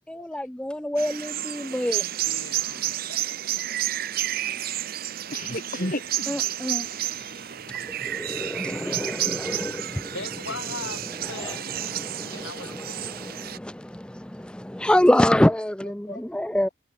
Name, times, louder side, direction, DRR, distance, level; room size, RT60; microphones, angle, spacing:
voice 1, 0.1-2.0 6.3-6.8 8.1-10.4 11.3-11.6 11.9-12.7 13.0-14.0 14.4-16.7, left 1 dB, 5° left, 0.5 m, -26 dB
sound 1, 1.0-13.6, right 13 dB, 50° right, 0.7 m, -31 dB
voice 2, 1.9-3.1 8.3-9.2 10.1-11.0 11.3-12.9, left 3 dB, 75° left, 4.8 m, -40 dB
voice 3, 4.5-4.9 5.3-6.4 9.1-9.2 15.8-16.2, left 1 dB, 45° left, 7.7 m, -34 dB
head